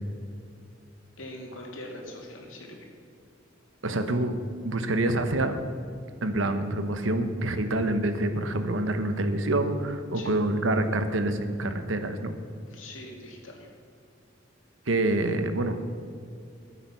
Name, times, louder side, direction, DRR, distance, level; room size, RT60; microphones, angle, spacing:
voice 1, 1.2-2.9 10.1-10.3 12.7-13.7, left 1 dB, 85° left, 0 dB, 2.6 m, -42 dB
voice 2, 3.8-4.3 4.6-5.6 6.2-12.3 14.9-15.8, right 1 dB, 75° right, 8 dB, 1.1 m, -26 dB
14.0 x 8.4 x 5.7 m, 2.5 s
head